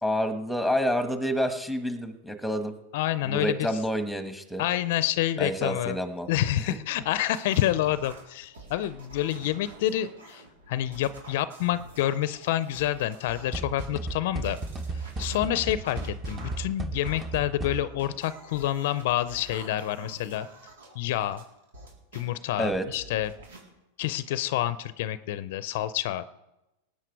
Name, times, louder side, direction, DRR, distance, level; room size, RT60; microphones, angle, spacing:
voice 1, 0.0-2.7 3.2-4.6 5.4-6.3 22.6-22.8, equal, ahead, 8 dB, 1.5 m, -28 dB
voice 2, 2.9-3.7 4.6-6.0 6.3-14.6 15.2-20.5 20.9-21.4 22.1-23.3 24.0-26.2, left 13 dB, 65° left, 15 dB, 0.6 m, -28 dB
sound 1, 7.0-13.9 14.3-22.3 22.7-23.6, right 2 dB, 80° right, 3.9 m, -47 dB
sound 2, 13.5-18.1, right 2 dB, 20° right, 1.3 m, -35 dB
19.0 x 8.7 x 4.7 m, 0.96 s
hypercardioid pair, 105°, 0 cm